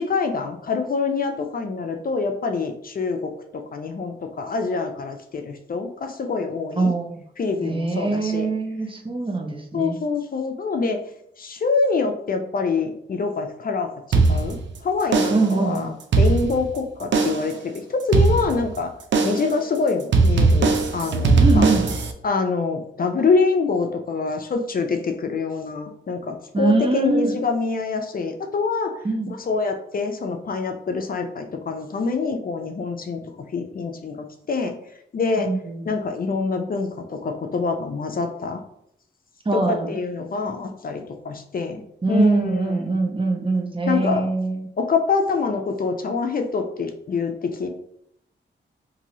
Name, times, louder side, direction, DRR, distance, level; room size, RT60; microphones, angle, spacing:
voice 1, 0.0-6.9 7.4-8.5 9.7-11.0 11.4-13.9 14.3-14.6 14.8-15.9 16.2-18.9 19.2-21.7 22.2-28.9 29.3-33.2 33.5-34.7 35.1-35.5 35.9-38.6 39.5-42.7 43.9-44.3 44.8-47.7, left 4 dB, 45° left, 5 dB, 0.4 m, -25 dB
voice 2, 6.8-7.1 7.6-10.0 15.3-15.9 21.4-21.9 26.5-27.4 29.0-29.3 35.4-35.8 39.5-40.0 42.0-44.7, right 3 dB, 25° right, 2 dB, 0.6 m, -23 dB
sound 1, 14.1-14.8 15.1-15.6 16.0-16.8 17.1-17.6 18.1-18.8 19.1-19.6 20.1-22.1, right 3 dB, 65° right, 0.4 m, -19 dB
2.9 x 2.6 x 2.7 m, 0.72 s
cardioid pair, 60°, 20 cm